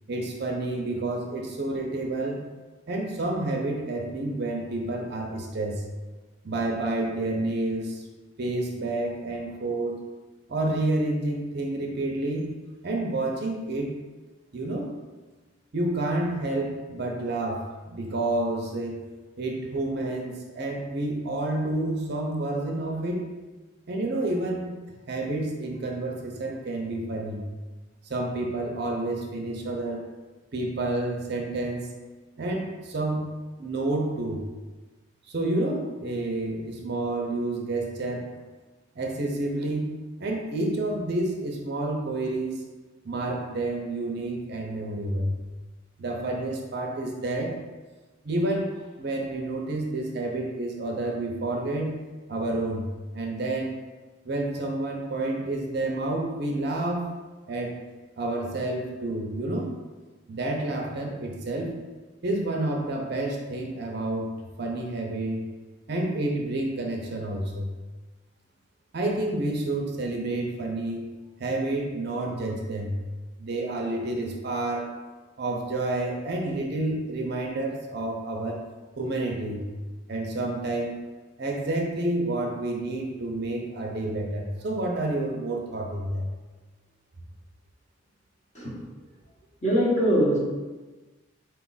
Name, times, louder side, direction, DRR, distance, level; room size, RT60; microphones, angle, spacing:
voice 1, 0.1-2.4 2.9-5.8 6.4-8.0 8.4-10.0 10.5-12.5 12.8-13.9 14.5-14.9 15.7-19.0 19.4-23.2 23.9-24.7 25.1-27.5 28.1-30.0 30.5-31.9 32.4-33.3 33.6-34.4 35.3-38.3 39.0-39.9 40.2-42.6 43.0-45.4 46.0-47.6 48.2-51.9 52.3-53.7 54.2-57.1 57.5-57.7 58.2-59.7 60.3-61.8 62.2-65.4 65.9-67.7 68.9-71.0 71.4-73.0 73.4-74.9 75.4-78.6 79.0-79.7 80.1-81.0 81.4-86.3, right 2 dB, 50° right, 0 dB, 0.5 m, -29 dB
voice 2, 89.6-90.4, equal, 35° left, -6 dB, 1.0 m, -22 dB
4.3 x 2.4 x 3.9 m, 1.2 s
head